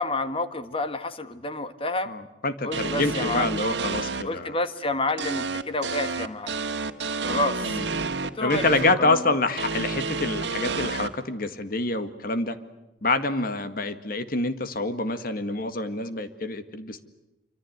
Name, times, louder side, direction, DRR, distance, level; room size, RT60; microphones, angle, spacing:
voice 1, 0.0-2.1 2.6-3.6 4.2-6.5 7.2-7.9 8.4-8.6 9.0-9.3, left 2 dB, 30° left, 10 dB, 1.7 m, -29 dB
voice 2, 2.0-4.6 7.6-7.9 8.4-12.6 13.0-17.1, left 2 dB, 55° left, 10 dB, 1.9 m, -27 dB
sound 1, 2.7-4.2 5.2-8.9 9.6-11.1, right 4 dB, 85° right, 1.7 m, -29 dB
26.5 x 25.0 x 8.1 m, 0.96 s
head